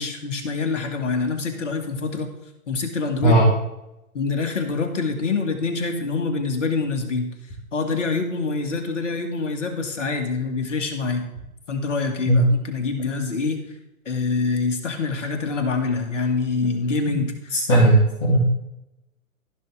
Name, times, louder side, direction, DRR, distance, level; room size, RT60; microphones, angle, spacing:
voice 1, 0.0-2.3 2.7-3.4 4.1-7.3 7.7-11.3 11.7-13.6 14.1-17.6, left 4 dB, 55° left, 4 dB, 2.2 m, -25 dB
voice 2, 17.7-18.4, right 2 dB, 40° left, -7 dB, 3.3 m, -16 dB
15.0 x 6.2 x 3.8 m, 0.91 s
figure-of-eight pair, 130°, 43 cm